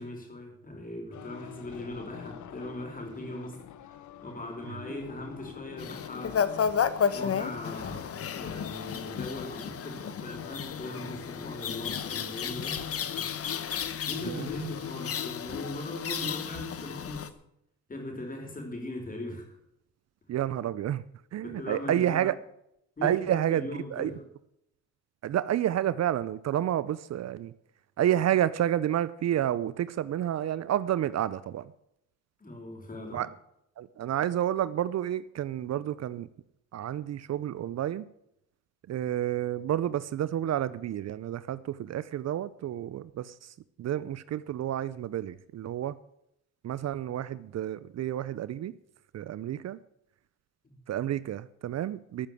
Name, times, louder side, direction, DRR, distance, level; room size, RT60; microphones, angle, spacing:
voice 1, 0.0-3.6 3.8-8.1 8.4-12.8 14.1-17.2 17.9-19.5 21.4-22.2 23.0-24.2 32.4-33.2, left 1 dB, 30° left, 2 dB, 5.2 m, -39 dB
sound 1, 1.1-17.0, left 11 dB, 75° left, 1.0 m, -45 dB
sound 2, 5.8-17.3, left 7 dB, 50° left, 1.2 m, -33 dB
voice 2, 20.3-21.0 21.3-22.4 23.0-24.1 25.2-27.5 28.0-31.7 33.1-33.3 33.8-36.3 36.7-38.1 38.9-46.0 46.6-48.7 49.1-49.8 50.9-52.3, right 11 dB, 60° right, 17 dB, 0.6 m, -30 dB
14.0 x 6.9 x 9.1 m, 0.78 s
cardioid pair, 90°, 30 cm